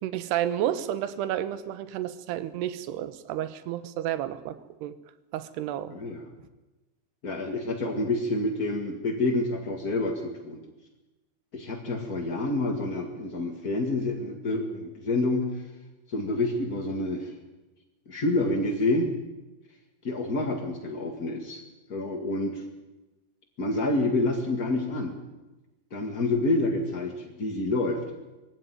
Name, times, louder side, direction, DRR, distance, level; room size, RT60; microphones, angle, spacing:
voice 1, 0.0-4.9 5.3-5.9, right 11 dB, 75° right, 13 dB, 3.0 m, -31 dB
voice 2, 5.9-6.3 7.2-10.6 11.5-15.6 16.1-17.3 18.1-19.1 20.0-21.6 21.9-22.6 23.6-25.1 25.9-28.0, left 2 dB, 50° left, 2 dB, 1.0 m, -28 dB
21.5 x 16.5 x 9.5 m, 1.1 s
omnidirectional pair, 5.0 m